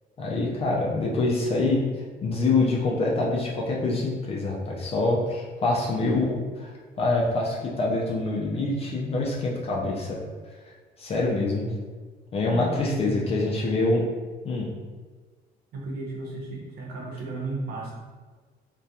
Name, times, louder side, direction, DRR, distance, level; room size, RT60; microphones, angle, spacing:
voice 1, 0.2-10.2 10.7-11.7 12.3-14.1 14.4-14.7, left 2 dB, 35° left, -3 dB, 0.4 m, -25 dB
voice 2, 12.5-13.3 15.7-17.9, right 2 dB, 75° right, -4 dB, 0.8 m, -33 dB
2.7 x 2.2 x 2.3 m, 1.4 s
cardioid pair, 110°, 17 cm